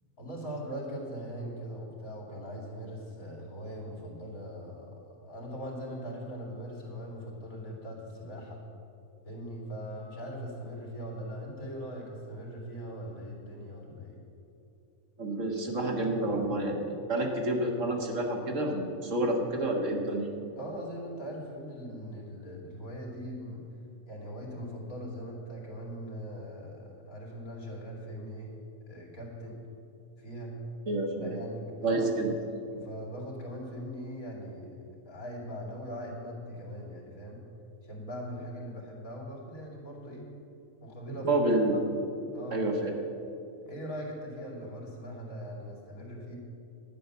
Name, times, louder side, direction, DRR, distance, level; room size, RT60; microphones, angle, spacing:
voice 1, 0.2-8.6 9.2-14.2 20.6-23.6 24.0-28.5 28.9-29.6 30.2-30.6 31.2-32.1 32.7-34.7 35.1-37.4 37.8-40.3 40.8-41.4 41.7-41.8 42.3-42.6 43.6-46.4, equal, 70° left, -3 dB, 3.2 m, -40 dB
voice 2, 15.2-20.3 30.9-31.4 31.8-32.3 41.2-41.8 42.5-42.9, right 1 dB, 60° right, 1 dB, 1.8 m, -29 dB
11.5 x 9.6 x 6.8 m, 2.8 s
omnidirectional pair, 1.5 m